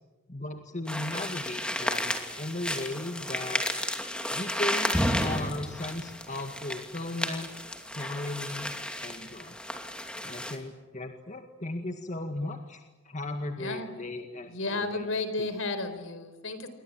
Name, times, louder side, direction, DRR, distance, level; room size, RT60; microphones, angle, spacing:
voice 1, 0.3-3.6 4.3-7.5 7.9-8.7 9.0-9.6 10.2-15.0 15.4-15.5, left 2 dB, 35° left, 5 dB, 1.9 m, -36 dB
sound 1, 0.9-10.6, left 1 dB, 5° left, 2.7 m, -32 dB
voice 2, 13.6-13.9 14.4-16.7, left 2 dB, 70° left, 11 dB, 4.4 m, -33 dB
28.0 x 24.0 x 8.8 m, 1.2 s
head